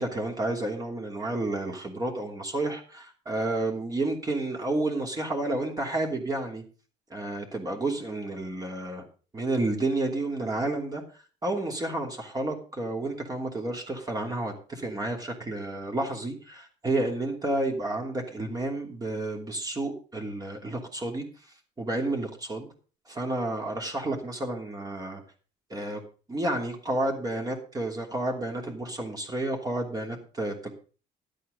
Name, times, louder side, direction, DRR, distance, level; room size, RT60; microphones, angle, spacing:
voice 1, 0.0-6.6 7.1-9.0 9.3-11.0 11.4-21.2 21.8-22.7 23.1-25.2 25.7-26.0 26.3-30.7, right 2 dB, 20° right, 1 dB, 2.9 m, -30 dB
12.0 x 8.5 x 5.0 m, 0.37 s
cardioid pair, 110°, 17 cm